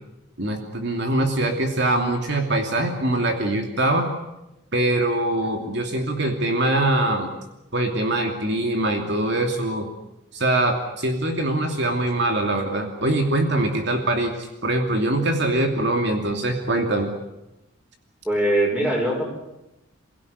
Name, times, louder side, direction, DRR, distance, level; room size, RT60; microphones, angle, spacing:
voice 1, 0.4-4.1 4.7-7.3 7.7-9.9 10.3-17.1, right 1 dB, 55° right, 3 dB, 2.8 m, -23 dB
voice 2, 18.2-19.3, right 1 dB, 5° right, 1 dB, 6.4 m, -22 dB
29.0 x 17.0 x 9.7 m, 0.93 s
head